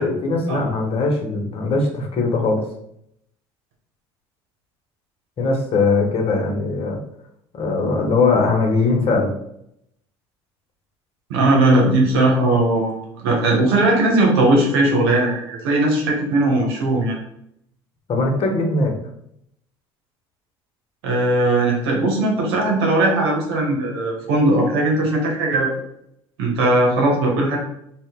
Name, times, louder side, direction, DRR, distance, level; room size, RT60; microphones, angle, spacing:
voice 1, 0.0-2.6 5.4-7.0 7.5-9.3 18.1-18.9, left 3 dB, 50° left, 2 dB, 0.9 m, -20 dB
voice 2, 11.3-17.2 21.0-25.7 26.4-27.6, right 2 dB, 85° right, 0 dB, 0.9 m, -18 dB
2.8 x 2.4 x 3.6 m, 0.74 s
supercardioid pair, 80°, 13 cm